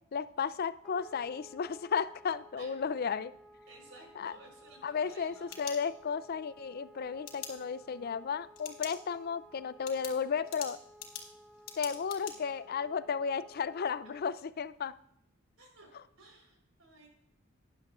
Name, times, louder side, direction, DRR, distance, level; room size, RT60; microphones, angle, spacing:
voice 1, 0.1-3.3 4.2-4.3 4.8-10.8 11.8-15.0, left 6 dB, 50° left, 15 dB, 0.4 m, -34 dB
Wind instrument woodwind instrument, 0.8-14.3, equal, ahead, 0.8 m, -57 dB
voice 2, 3.7-5.5 12.2-12.9 15.6-17.1, right 2 dB, 80° right, 1 dB, 4.1 m, -56 dB
sound 1, 5.2-6.3 7.3-7.5 8.6-9.0 9.4-9.5 9.9-12.3, left 8 dB, 85° left, 2.0 m, -44 dB
13.0 x 10.5 x 2.4 m, 0.74 s
head